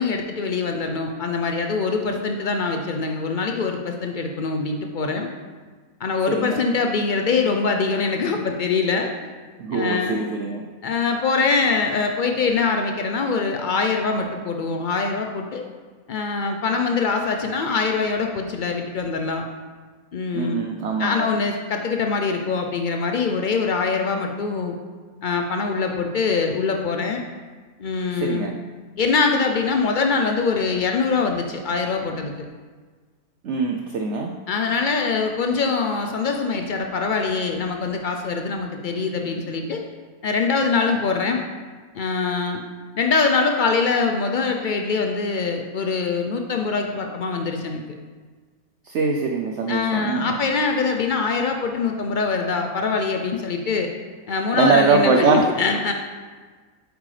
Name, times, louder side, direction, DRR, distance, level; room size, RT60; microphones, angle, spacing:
voice 1, 0.0-5.3 6.0-9.1 9.7-10.2 10.8-15.6 16.1-19.5 20.1-20.6 21.0-24.7 25.2-27.2 27.8-28.5 29.0-32.3 34.5-39.8 40.2-41.4 41.9-42.6 42.9-47.8 49.7-53.9 54.3-55.9, left 4 dB, 90° left, 3 dB, 0.4 m, -23 dB
voice 2, 6.3-6.6 9.6-10.6 20.3-21.3 28.1-28.6 33.4-34.3 48.8-50.3 54.5-55.4, right 4 dB, 65° right, 2 dB, 0.8 m, -22 dB
8.2 x 7.7 x 3.2 m, 1.4 s
omnidirectional pair, 1.5 m